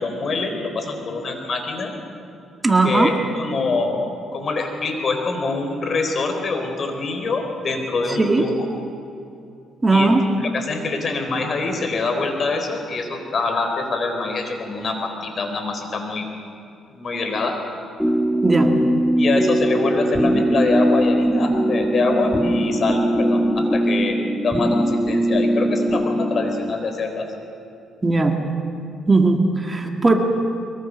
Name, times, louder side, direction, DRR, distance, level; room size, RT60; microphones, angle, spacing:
voice 1, 0.0-1.9 2.8-8.5 9.9-10.1 10.4-16.3 16.9-17.5 19.2-27.3, left 3 dB, 50° left, 5 dB, 3.9 m, -25 dB
voice 2, 2.6-3.1 8.1-8.5 9.8-10.2 18.4-18.8 28.0-28.4 29.1-30.2, right 3 dB, 20° right, 4 dB, 1.9 m, -18 dB
sound 1, 18.0-26.7, right 1 dB, 5° left, 1.3 m, -20 dB
23.0 x 22.5 x 6.3 m, 2.6 s
cardioid pair, 90°, 0 cm